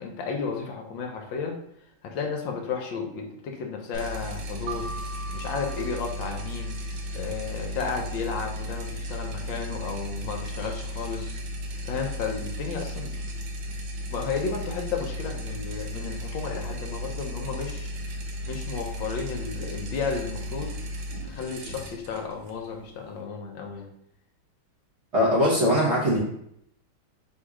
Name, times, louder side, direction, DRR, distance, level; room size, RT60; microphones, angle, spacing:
voice 1, 0.0-1.5 2.0-4.9 5.3-6.8 7.1-11.4 11.8-13.2 14.1-17.9 18.5-20.7 21.2-23.9, left 5 dB, 75° left, 2 dB, 1.3 m, -33 dB
sound 1, 3.9-23.2, equal, 85° right, 1.6 m, -35 dB
Keyboard (musical), 4.7-7.2, right 3 dB, 65° right, 1.2 m, -41 dB
voice 2, 25.1-26.2, equal, 45° right, -6 dB, 0.9 m, -21 dB
3.7 x 2.7 x 4.6 m, 0.74 s
omnidirectional pair, 2.2 m